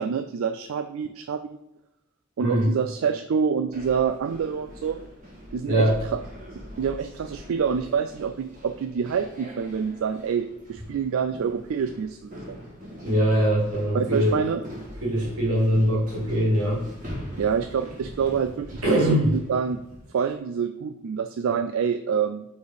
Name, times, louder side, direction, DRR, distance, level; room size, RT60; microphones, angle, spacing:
voice 1, 0.0-1.6 2.4-5.0 5.5-6.2 6.8-12.6 13.9-14.6 17.4-19.8 20.1-22.4, right 6 dB, 65° right, 9 dB, 0.3 m, -27 dB
voice 2, 2.4-2.7 5.6-6.0 13.0-14.4 15.0-16.8 18.8-19.3, equal, 80° right, -4 dB, 2.4 m, -22 dB
sound 1, 3.7-20.2, equal, 35° right, 1.7 m, -42 dB
4.9 x 4.3 x 5.0 m, 0.86 s
head